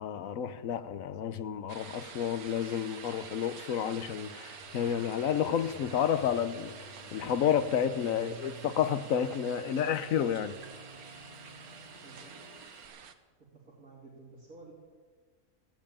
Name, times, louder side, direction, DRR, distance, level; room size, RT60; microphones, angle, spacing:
voice 1, 0.0-6.7 7.1-10.5, left 8 dB, 70° left, 1.2 m, -30 dB
sound 1, 1.7-13.1, right 7 dB, 90° right, 1.5 m, -49 dB
Cricket, 2.5-12.9, equal, 25° left, 2.7 m, -57 dB
sound 2, 4.6-12.6, right 4 dB, 25° right, 3.8 m, -51 dB
voice 2, 12.0-12.3 13.5-14.7, right 3 dB, 75° right, 3.4 m, -52 dB
15.0 x 10.5 x 8.8 m
omnidirectional pair, 1.5 m